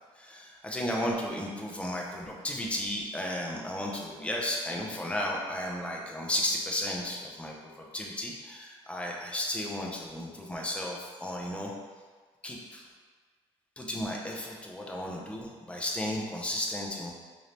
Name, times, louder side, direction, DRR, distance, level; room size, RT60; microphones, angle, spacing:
voice 1, 0.2-11.7 12.4-12.8 13.8-17.1, left 1 dB, 10° left, -2 dB, 0.6 m, -34 dB
4.1 x 2.7 x 3.3 m, 1.5 s
cardioid pair, 120°, 11 cm